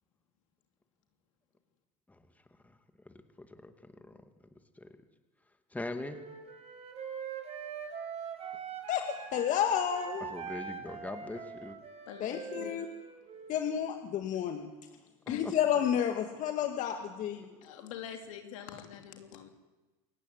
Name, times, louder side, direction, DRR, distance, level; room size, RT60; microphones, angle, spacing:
voice 1, 3.1-4.2 4.8-5.0 5.7-6.2 10.2-11.7 15.4-15.5 17.5-17.7, left 2 dB, 10° left, 7 dB, 2.3 m, -42 dB
Wind instrument woodwind instrument, 6.0-9.5 9.9-13.6, right 6 dB, 40° right, 5.9 m, -43 dB
voice 2, 9.3-10.3 12.2-12.9 13.5-14.7 15.3-17.5, left 9 dB, 50° left, 5 dB, 2.1 m, -30 dB
voice 3, 12.1-12.9 14.3-14.4 15.3-15.4 17.6-19.5, left 9 dB, 85° left, 4 dB, 3.5 m, -45 dB
27.5 x 15.5 x 9.7 m, 1.2 s
supercardioid pair, 100°, 16 cm